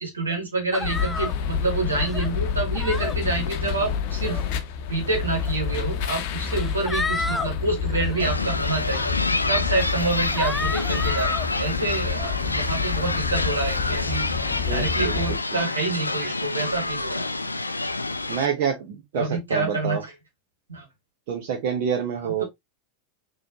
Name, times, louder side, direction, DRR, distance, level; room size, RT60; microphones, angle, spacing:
voice 1, 0.0-4.4 4.8-9.1 9.5-11.3 11.6-14.3 14.7-17.3 19.1-20.1 20.7-20.8 22.2-22.4, right 3 dB, 80° right, 1.7 m, -27 dB
sound 1, 0.7-1.3 1.9-2.3 2.7-3.1 4.0-4.4 5.5-5.6 6.5-7.5 7.9-8.3 8.9-9.0 9.7-9.9 10.3-11.5, left 3 dB, 15° left, 0.5 m, -31 dB
sound 2, 0.8-15.4, left 7 dB, 55° left, 0.7 m, -28 dB
sound 3, 8.2-18.5, left 2 dB, 90° left, 0.3 m, -28 dB
voice 2, 14.7-15.4 18.3-20.0 21.3-22.4, right 7 dB, 55° right, 0.9 m, -27 dB
4.3 x 3.1 x 2.8 m
figure-of-eight pair, 85°, 0 cm